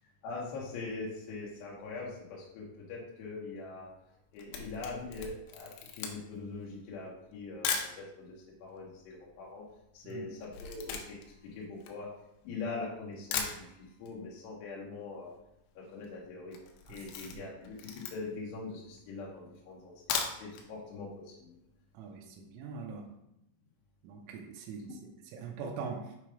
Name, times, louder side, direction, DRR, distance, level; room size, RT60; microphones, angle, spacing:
voice 1, 0.2-3.9 4.3-9.6 9.9-11.2 11.5-12.1 12.4-15.3 15.8-16.5 16.9-21.6, left 3 dB, 70° left, -5 dB, 3.0 m, -42 dB
Camera, 4.1-8.0 8.7-8.8 9.0-12.6 13.0-13.1 13.3-14.2 14.4-14.5 14.8-14.9 15.1-15.5 15.9-16.1 16.5-18.5 19.0-19.1 19.9-20.7 21.0-21.1 21.5-21.6, left 6 dB, 90° left, 3.2 m, -38 dB
voice 2, 22.0-23.0 24.0-24.9 25.3-26.0, right 5 dB, 90° right, 1 dB, 3.3 m, -41 dB
7.7 x 3.1 x 4.9 m, 0.82 s
omnidirectional pair, 5.5 m